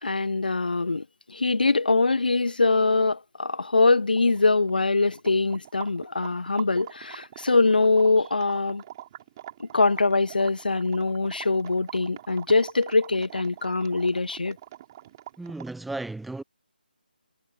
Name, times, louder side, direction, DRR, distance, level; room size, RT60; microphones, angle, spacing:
voice 1, 0.0-8.8 9.6-14.6, left 3 dB, 60° left, 1.2 m, -23 dB
sound 1, 4.2-15.8, right 13 dB, 20° right, 6.5 m, -44 dB
voice 2, 15.4-16.4, right 2 dB, ahead, 0.7 m, -34 dB
figure-of-eight pair, 150°, 6 cm